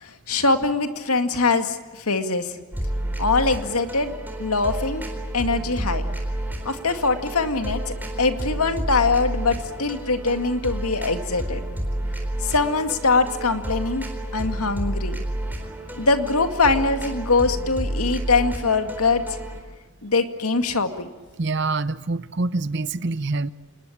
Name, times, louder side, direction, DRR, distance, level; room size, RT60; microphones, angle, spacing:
voice 1, 0.0-2.6 3.2-4.1 4.4-5.0 5.3-6.0 6.7-11.6 12.4-14.1 14.3-15.2 16.0-19.2 20.0-21.1, left 3 dB, 80° left, 2.2 m, -22 dB
sound 1, 2.7-19.6, right 1 dB, 10° right, 4.0 m, -30 dB
voice 2, 21.4-23.5, right 3 dB, 50° right, 0.8 m, -25 dB
27.0 x 20.5 x 8.7 m
head